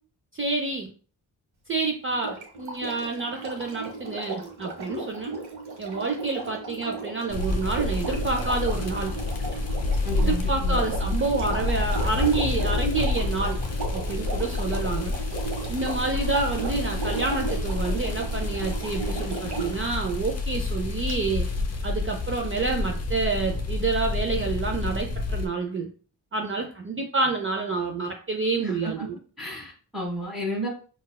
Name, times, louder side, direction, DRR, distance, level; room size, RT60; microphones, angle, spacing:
voice 1, 0.3-0.9 1.7-5.3 5.8-9.1 10.1-13.6 13.9-15.1 15.7-21.5 21.8-25.9 26.3-29.2, right 3 dB, 30° right, 2 dB, 0.5 m, -28 dB
Sink (filling or washing), 2.1-19.9 21.1-21.2, right 3 dB, 55° right, 1.1 m, -36 dB
sound 1, 7.3-25.5, left 3 dB, 35° left, 0.7 m, -29 dB
voice 2, 10.0-10.8 28.6-29.1 29.4-30.7, equal, ahead, -4 dB, 1.3 m, -33 dB
3.9 x 2.4 x 2.2 m, 0.39 s
cardioid pair, 50°, 45 cm